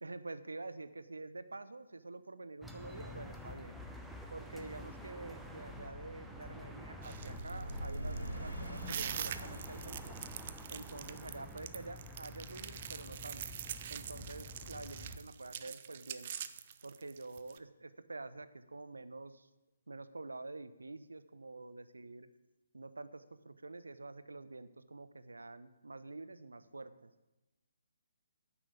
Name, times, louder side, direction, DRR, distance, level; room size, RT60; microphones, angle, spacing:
voice 1, 0.0-3.8 4.3-10.2 10.7-13.4 13.9-16.3 16.8-19.5 19.9-22.3 22.7-27.1, right 3 dB, 70° right, 12 dB, 0.7 m, -47 dB
sound 1, 2.6-15.2, left 1 dB, ahead, 0.8 m, -49 dB
sound 2, 7.0-17.6, right 9 dB, 35° right, 0.5 m, -44 dB
sound 3, 7.0-12.0, right 1 dB, 85° right, 2.3 m, -44 dB
9.7 x 6.2 x 8.2 m, 1.0 s
figure-of-eight pair, 135°, 0 cm